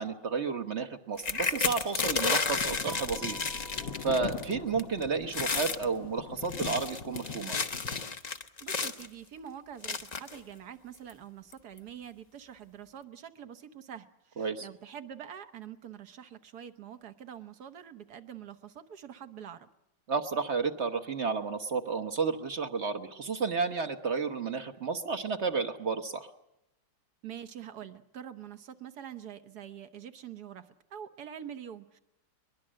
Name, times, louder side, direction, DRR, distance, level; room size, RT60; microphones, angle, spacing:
voice 1, 0.0-3.4 4.0-7.6 14.4-14.7 20.1-26.3, right 5 dB, 40° right, 9 dB, 1.2 m, -32 dB
sound 1, 1.2-4.5 4.8-5.0 5.3-5.8 6.4-9.1 9.8-10.4 11.1-11.2 11.5-11.8, left 4 dB, 40° left, 0.6 m, -32 dB
sound 2, 2.1-8.0, left 7 dB, 75° left, 1.7 m, -42 dB
sound 3, 2.9-5.3, right 4 dB, 90° right, 3.2 m, -47 dB
voice 2, 8.6-19.7 27.2-32.0, right 9 dB, 60° right, 10 dB, 1.6 m, -45 dB
22.5 x 21.5 x 7.5 m, 0.86 s
omnidirectional pair, 2.0 m